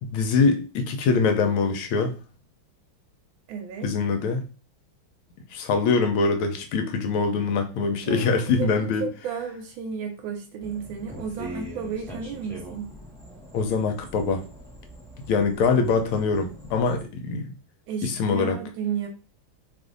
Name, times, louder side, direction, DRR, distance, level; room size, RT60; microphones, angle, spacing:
voice 1, 0.0-2.2 3.8-4.4 5.5-9.1 13.5-14.4 15.2-17.5 18.0-18.6, left 4 dB, 80° left, 1.5 m, -23 dB
voice 2, 3.5-3.9 8.1-12.9 17.9-19.1, right 6 dB, 75° right, 1.3 m, -33 dB
sound 1, 10.6-17.0, right 1 dB, ahead, 0.6 m, -42 dB
3.3 x 2.5 x 3.7 m
omnidirectional pair, 2.3 m